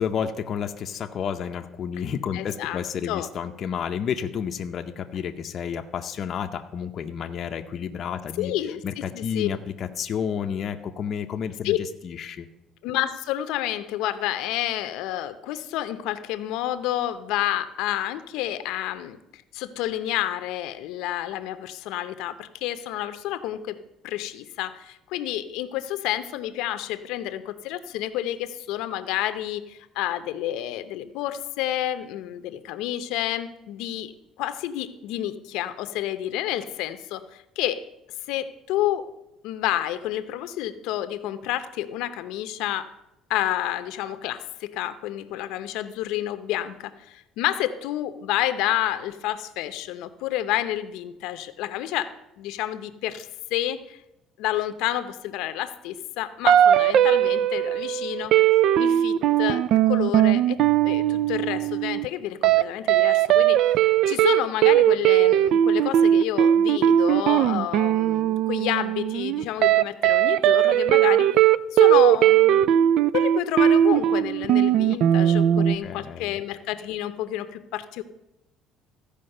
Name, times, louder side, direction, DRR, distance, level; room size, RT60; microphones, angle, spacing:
voice 1, 0.0-8.5 8.8-12.5 75.6-76.4, left 7 dB, 35° left, 5 dB, 0.6 m, -31 dB
voice 2, 2.3-2.8 3.1-3.3 8.4-9.5 11.6-11.8 12.8-23.8 24.0-34.1 34.4-37.8 38.3-39.1 39.4-42.9 43.3-54.0 54.4-58.3 58.8-60.6 60.8-71.4 71.7-78.0, left 13 dB, 80° left, 11 dB, 0.7 m, -29 dB
sound 1, 56.5-62.1 62.4-62.6 62.9-75.8, right 11 dB, 55° right, 0.3 m, -19 dB
14.5 x 5.1 x 6.5 m, 0.91 s
cardioid pair, 165°, 0 cm